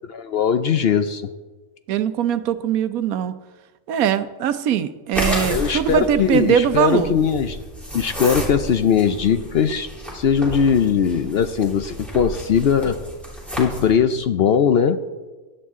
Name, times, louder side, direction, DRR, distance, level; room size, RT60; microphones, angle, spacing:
voice 1, 0.1-1.2 5.2-7.6 7.9-9.9 10.1-13.0 13.6-15.0, left 7 dB, 60° left, 10 dB, 0.7 m, -19 dB
voice 2, 1.9-3.3 3.9-7.1, right 9 dB, 85° right, 11 dB, 1.2 m, -21 dB
sound 1, 5.1-14.0, right 1 dB, ahead, 3.2 m, -32 dB
16.5 x 11.5 x 3.7 m, 1.3 s
omnidirectional pair, 1.5 m